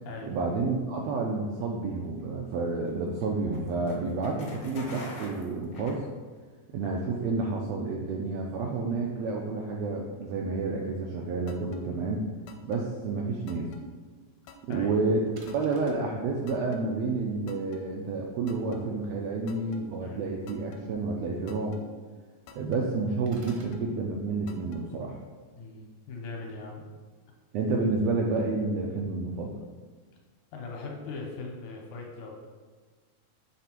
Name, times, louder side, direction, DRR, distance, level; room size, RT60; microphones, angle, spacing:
voice 1, 0.3-6.0 6.7-12.2 12.6-13.7 14.7-21.7 22.6-25.2 27.5-29.6, right 3 dB, 85° right, -1 dB, 1.5 m, -30 dB
sound 1, 2.1-6.6, left 1 dB, 55° left, 1.0 m, -45 dB
sound 2, 11.5-11.8 12.5-12.8 13.5-13.8 14.5-14.8 15.5-15.8 16.5-16.8 17.5-17.8 18.5-18.8 19.5-19.8 20.5-20.8 21.5-21.8 22.5-22.8 23.5-23.8 24.5-24.8, left 4 dB, 85° left, 2.1 m, -48 dB
voice 2, 14.7-15.0 20.0-20.4 25.5-26.9 30.5-32.5, left 3 dB, 70° left, 0 dB, 2.1 m, -40 dB
sound 3, 15.4-16.2 23.3-23.8, right 2 dB, 70° right, 1.5 m, -49 dB
7.6 x 3.3 x 4.5 m, 1.4 s
omnidirectional pair, 3.7 m